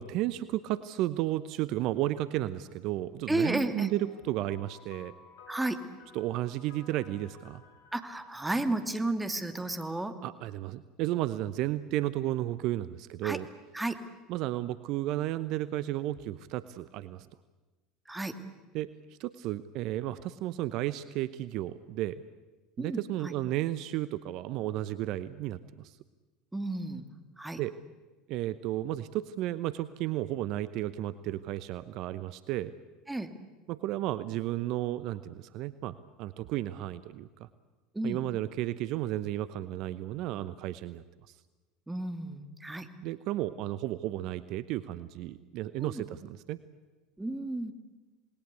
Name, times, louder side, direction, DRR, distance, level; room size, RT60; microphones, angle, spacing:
voice 1, 0.0-5.1 6.1-7.6 10.2-13.5 14.3-17.3 18.7-18.9 19.2-22.2 22.8-26.0 27.6-27.7 28.3-32.7 33.7-37.5 38.0-41.0 43.0-46.6, right 14 dB, 55° right, 15 dB, 0.8 m, -33 dB
voice 2, 3.3-3.9 5.5-5.8 7.9-10.1 13.2-13.4 13.7-14.0 18.1-18.3 22.8-23.3 26.5-27.0 27.4-27.6 33.1-33.3 37.9-38.2 41.9-42.9 45.8-46.0 47.2-47.7, right 2 dB, 10° right, 8 dB, 2.5 m, -32 dB
sound 1, 3.8-9.5, left 6 dB, 75° left, 4.2 m, -56 dB
28.0 x 20.5 x 8.4 m, 1.2 s
hypercardioid pair, 75°, 0 cm